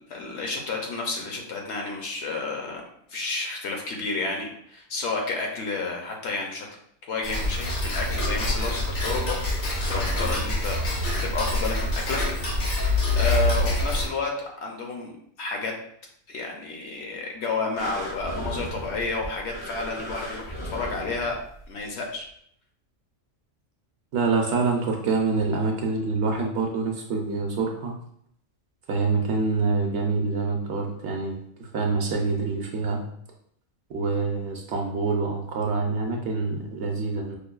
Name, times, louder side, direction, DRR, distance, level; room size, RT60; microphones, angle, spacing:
voice 1, 0.0-2.8 3.1-6.7 7.1-10.8 11.2-12.2 12.6-12.7 13.2-14.3 14.6-15.8 16.3-21.4 21.7-22.3, left 3 dB, 65° left, 1 dB, 0.8 m, -31 dB
Tick-tock, 7.2-14.1, left 1 dB, 80° left, 1.4 m, -25 dB
sound 1, 17.8-21.7 22.3-22.4, equal, 35° left, 0.5 m, -36 dB
voice 2, 24.1-27.9 28.9-33.0 33.9-37.4, right 4 dB, 65° right, 1 dB, 0.8 m, -26 dB
5.2 x 2.2 x 2.3 m, 0.68 s
omnidirectional pair, 1.4 m